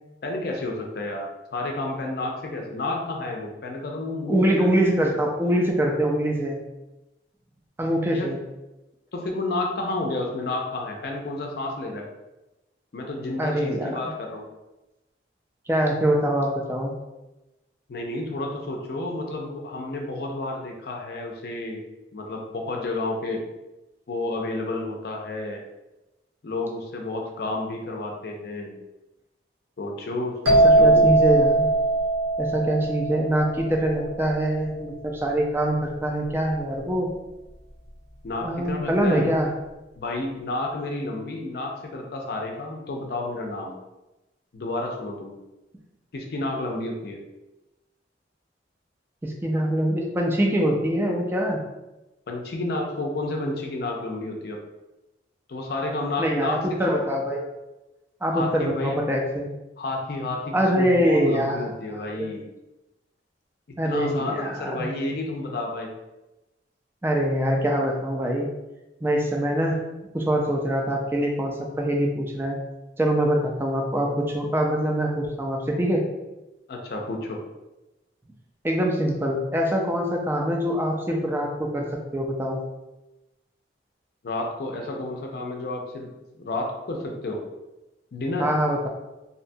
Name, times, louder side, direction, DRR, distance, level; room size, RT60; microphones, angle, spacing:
voice 1, 0.2-4.7 8.0-8.3 9.1-12.1 12.9-14.5 17.9-21.9 22.1-23.4 24.1-25.6 26.4-28.7 29.8-31.2 38.2-39.3 40.0-43.7 44.5-45.4 46.1-47.2 52.3-54.6 55.5-56.9 58.3-59.0 59.8-62.4 63.8-65.9 76.7-77.4 84.2-86.1 86.3-87.4 88.1-88.5, left 2 dB, 55° left, 1 dB, 0.5 m, -31 dB
voice 2, 4.3-6.6 7.8-8.4 13.4-14.1 15.7-16.9 30.6-31.7 32.4-37.1 38.4-39.5 49.2-51.6 56.2-57.5 58.2-59.5 60.5-62.3 63.8-64.8 67.0-68.5 69.0-69.8 70.1-72.6 73.0-76.0 78.6-81.9 82.1-82.6 88.4-88.9, right 1 dB, 10° right, 0 dB, 0.3 m, -24 dB
sound 1, 30.4-34.1, right 2 dB, 85° right, 0.8 m, -20 dB
2.7 x 2.2 x 2.6 m, 1.0 s
head